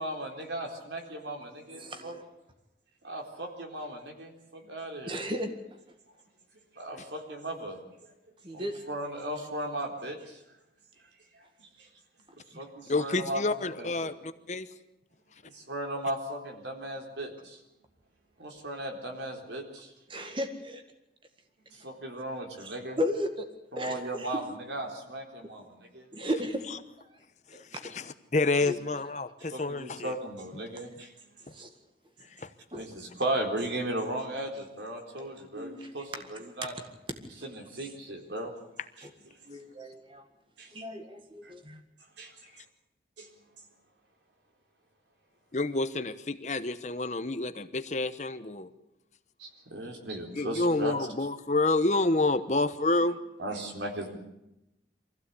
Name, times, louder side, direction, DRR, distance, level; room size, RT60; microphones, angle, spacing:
voice 1, 0.0-2.2 3.0-5.1 6.8-7.8 8.5-10.4 11.6-11.7 12.6-13.9 15.5-17.6 18.4-19.9 21.7-23.0 23.7-24.4 24.7-25.7 25.9-26.1 29.4-31.1 32.7-36.7 37.4-38.5 39.0-39.1 40.6-40.7 41.4-41.5 42.2-42.3 43.2-43.3 49.4-50.9 53.4-54.2, right 1 dB, 85° right, 2 dB, 4.0 m, -36 dB
voice 2, 1.7-2.2 5.1-5.5 8.4-8.8 12.5-12.6 20.1-20.8 22.5-23.5 23.8-24.4 26.1-26.6 27.5-27.8 28.6-28.8 31.5-31.7 32.7-32.9 34.3-34.5 35.2-36.2 37.8-37.9 39.0-39.1 39.5-40.3 40.7-41.8, equal, 30° right, 6 dB, 1.8 m, -35 dB
voice 3, 12.9-14.7 27.5-27.6 27.9-28.0 28.3-30.1 32.4-32.5 45.5-48.7 50.4-53.2, left 2 dB, 40° left, 11 dB, 1.0 m, -28 dB
24.5 x 15.5 x 8.4 m, 0.90 s
head